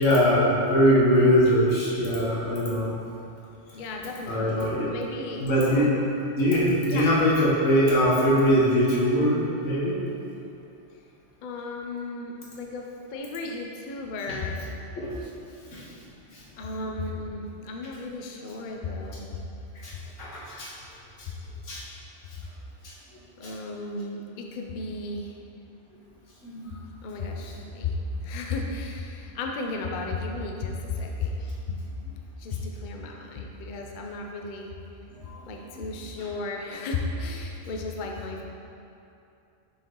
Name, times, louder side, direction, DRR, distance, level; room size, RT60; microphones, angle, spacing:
voice 1, 0.0-2.9 4.3-4.9 5.4-5.9 6.3-10.0 15.0-15.1 15.7-15.8 20.2-20.7 21.7-21.8 23.4-23.5 26.4-26.8 27.1-27.2 36.2-36.3, equal, 80° left, -6 dB, 1.6 m, -22 dB
voice 2, 3.7-6.0 6.9-7.1 11.4-14.6 16.6-19.4 21.3-21.4 23.4-25.4 27.0-31.8 32.4-34.7 35.5-38.5, left 3 dB, 55° left, 1 dB, 0.6 m, -34 dB
6.2 x 4.4 x 3.7 m, 2.7 s
omnidirectional pair, 1.3 m